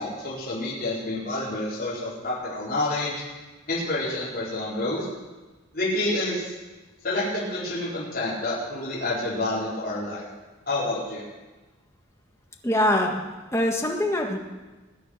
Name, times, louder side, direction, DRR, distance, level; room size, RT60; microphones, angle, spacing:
voice 1, 0.0-3.1 3.7-5.1 5.7-6.5 7.0-10.2 10.7-11.2, left 2 dB, 45° left, -9 dB, 4.6 m, -28 dB
voice 2, 12.6-13.2 13.5-14.4, left 1 dB, 15° left, 1 dB, 1.6 m, -23 dB
21.0 x 9.3 x 5.9 m, 1.2 s
head